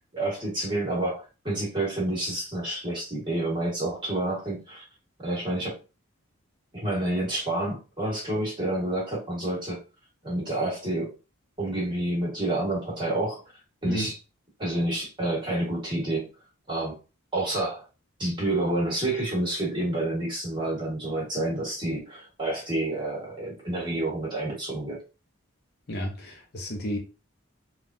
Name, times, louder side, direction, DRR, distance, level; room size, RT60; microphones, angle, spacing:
voice 1, 0.1-4.8 5.2-5.8 6.7-9.8 10.2-11.1 11.6-13.4 13.8-14.2 14.6-16.3 16.7-16.9 17.3-17.8 18.2-25.0, right 1 dB, 20° right, 1.4 m, -29 dB
voice 2, 25.9-27.0, equal, 50° left, 0.6 m, -32 dB
3.6 x 2.3 x 2.6 m
head